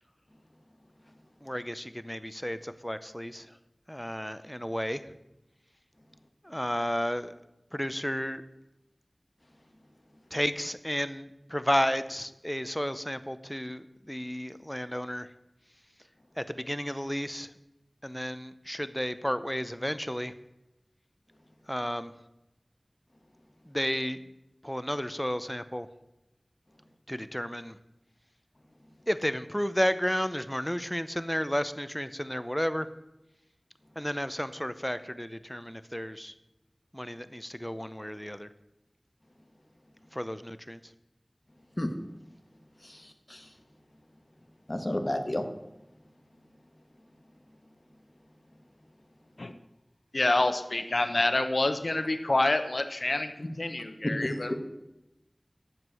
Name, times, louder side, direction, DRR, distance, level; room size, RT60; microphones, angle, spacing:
voice 1, 1.4-3.5 3.9-5.0 6.4-7.3 7.7-8.4 10.3-15.3 16.4-17.5 18.0-20.3 21.7-22.1 23.7-24.2 24.6-25.9 27.1-27.8 29.1-32.9 34.0-36.3 36.9-38.5 40.1-40.8, equal, 10° left, 13 dB, 0.7 m, -32 dB
voice 2, 42.8-43.5 44.7-45.5 54.0-54.6, left 1 dB, 35° left, 6 dB, 1.4 m, -31 dB
voice 3, 50.1-54.6, left 2 dB, 70° left, 9 dB, 0.8 m, -27 dB
11.0 x 7.4 x 6.3 m, 0.94 s
wide cardioid pair, 40°, 0 cm